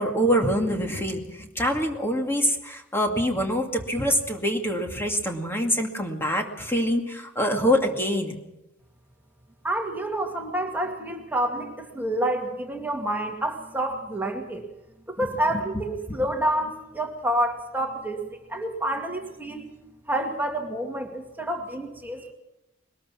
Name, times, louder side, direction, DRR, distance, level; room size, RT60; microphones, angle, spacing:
voice 1, 0.0-8.4, equal, 10° left, 2 dB, 2.3 m, -25 dB
voice 2, 9.6-14.7 15.1-19.7 20.1-22.3, right 1 dB, 10° right, 2 dB, 2.2 m, -28 dB
22.0 x 20.5 x 6.2 m, 0.94 s
head